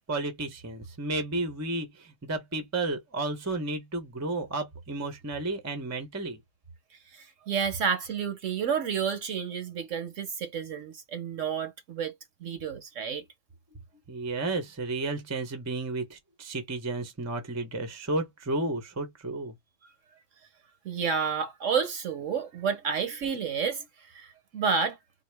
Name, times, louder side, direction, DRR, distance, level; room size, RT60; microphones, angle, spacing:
voice 1, 0.0-6.4 14.1-19.5, right 2 dB, 20° right, 0.5 m, -32 dB
voice 2, 7.1-12.1 12.4-13.2 20.8-25.0, right 6 dB, 60° right, 0.9 m, -30 dB
4.0 x 2.3 x 3.3 m
omnidirectional pair, 1.7 m